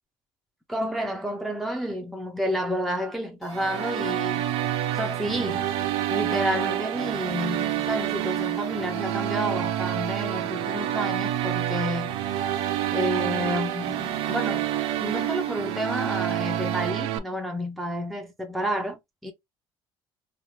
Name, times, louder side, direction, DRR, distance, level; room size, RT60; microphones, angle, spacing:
voice 1, 0.7-4.5 4.9-5.7 6.1-12.1 12.9-14.7 15.0-19.3, equal, ahead, 0.4 m, -30 dB
sound 1, 3.4-16.9, right 2 dB, 80° left, 1.2 m, -45 dB
sound 2, 3.5-17.2, right 12 dB, 75° right, 0.4 m, -28 dB
2.9 x 2.1 x 2.9 m
cardioid pair, 170°, 10 cm